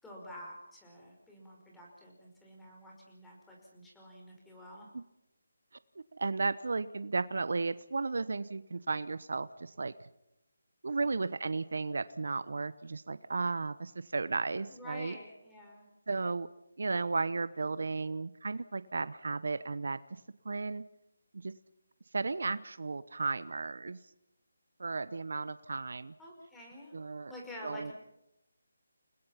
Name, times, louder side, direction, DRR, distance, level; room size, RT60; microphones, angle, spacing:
voice 1, 0.0-4.9 11.0-11.2 14.7-15.9 26.2-26.9 27.3-27.9, left 1 dB, 5° left, -2 dB, 5.4 m, -49 dB
voice 2, 6.1-9.9 10.8-15.1 16.1-16.5 16.8-20.0 20.4-20.8 21.3-21.5 22.1-24.0 24.8-26.1 26.9-27.3 27.6-27.9, right 3 dB, 65° right, 15 dB, 1.0 m, -34 dB
30.0 x 20.5 x 5.8 m, 0.87 s
figure-of-eight pair, 165°, 0 cm